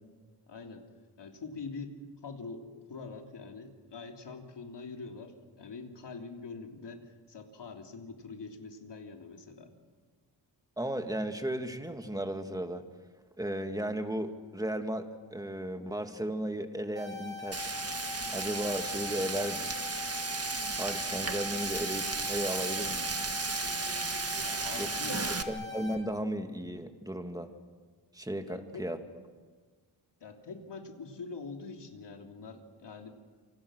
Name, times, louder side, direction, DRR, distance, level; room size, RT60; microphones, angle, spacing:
voice 1, 0.5-0.8 1.2-9.7 24.4-25.3 28.5-28.8 30.2-33.1, left 4 dB, 75° left, 3 dB, 3.3 m, -44 dB
voice 2, 10.8-12.8 13.4-17.7 18.3-19.7 20.8-23.0 24.8-24.9 25.3-27.5 28.1-29.0, right 1 dB, 10° right, 6 dB, 2.4 m, -35 dB
sound 1, 17.0-26.0, left 4 dB, 65° right, 5.5 m, -41 dB
Frying (food), 17.5-25.4, right 4 dB, 35° right, 1.6 m, -34 dB
28.0 x 25.5 x 6.5 m, 1.5 s
cardioid pair, 75°, 42 cm